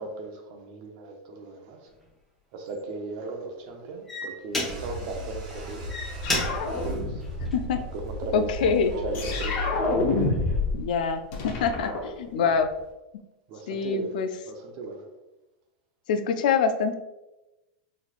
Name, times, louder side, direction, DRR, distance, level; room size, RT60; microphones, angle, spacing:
voice 1, 0.0-1.9 2.5-5.9 6.8-7.2 7.9-9.7 12.3-12.5 13.5-14.2 14.5-15.0, right 3 dB, 50° right, 3 dB, 0.6 m, -36 dB
sound 1, 1.9-2.0 2.7-3.0 3.7-3.8 4.1-5.1 5.7-8.1 8.6-9.0, left 1 dB, 5° left, 1.2 m, -33 dB
sound 2, 4.7-10.6, left 1 dB, 80° right, 1.3 m, -35 dB
sound 3, 6.2-7.5 9.1-10.8 11.1-12.7, left 3 dB, 50° left, 0.8 m, -28 dB
voice 2, 8.3-8.9 10.7-12.7 13.7-14.3 16.1-17.0, left 6 dB, 75° left, 8 dB, 0.4 m, -25 dB
4.1 x 3.0 x 2.4 m, 1.0 s
supercardioid pair, 145°, 5 cm